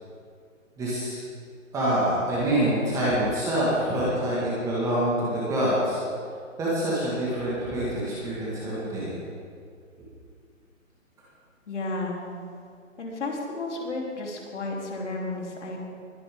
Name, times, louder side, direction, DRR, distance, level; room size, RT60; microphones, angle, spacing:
voice 1, 0.8-1.2 1.7-6.0 6.6-9.2, right 1 dB, 10° right, -7 dB, 1.8 m, -26 dB
voice 2, 11.7-12.2 13.0-15.8, left 2 dB, 55° left, -2 dB, 3.4 m, -32 dB
20.5 x 10.0 x 3.7 m, 2.2 s
hypercardioid pair, 160°, 41 cm